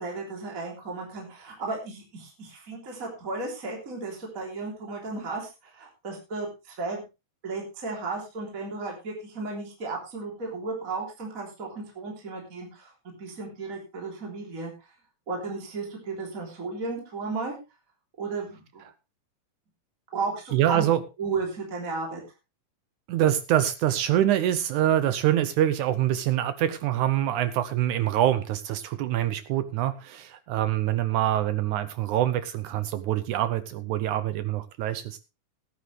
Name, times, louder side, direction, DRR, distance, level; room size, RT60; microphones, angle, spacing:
voice 1, 0.0-7.0 7.4-12.9 13.2-14.7 15.3-17.6 18.2-18.8 20.1-20.8 21.2-22.2, right 3 dB, 20° right, 0 dB, 3.3 m, -34 dB
voice 2, 20.5-21.0 23.1-35.2, right 12 dB, 80° right, 13 dB, 1.7 m, -25 dB
17.0 x 9.6 x 3.3 m, 0.26 s
omnidirectional pair, 4.3 m